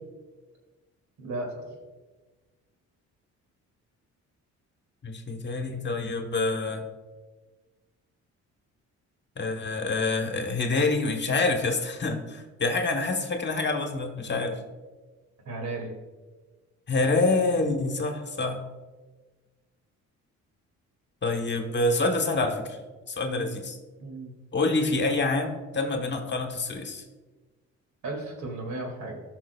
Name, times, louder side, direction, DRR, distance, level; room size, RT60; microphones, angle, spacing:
voice 1, 1.2-1.6 15.4-15.9 23.2-23.5 24.0-24.3 28.0-29.2, right 2 dB, 70° right, 1 dB, 2.4 m, -35 dB
voice 2, 5.0-6.8 9.4-14.6 16.9-18.6 21.2-22.8 23.1-23.8 24.5-27.0, left 3 dB, 35° left, 3 dB, 1.2 m, -27 dB
15.5 x 6.0 x 2.3 m, 1.3 s
cardioid pair, 90°, 30 cm